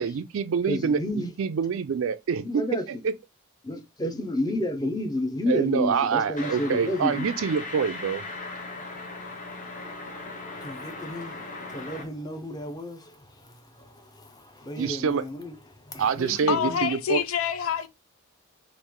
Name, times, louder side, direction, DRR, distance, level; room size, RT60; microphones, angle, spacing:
voice 1, 0.0-3.1 5.5-8.2 14.8-15.2 16.0-17.2, right 6 dB, 70° right, 0.4 m, -26 dB
voice 2, 0.7-1.3 2.4-2.8 3.6-7.3 10.5-11.4 11.7-13.2 13.8-15.5 15.9-16.9, left 1 dB, 20° left, 0.6 m, -31 dB
sound 1, 6.4-12.0, left 3 dB, 40° left, 0.9 m, -38 dB
voice 3, 16.3-17.9, left 8 dB, 80° left, 0.5 m, -27 dB
3.1 x 2.5 x 3.6 m
head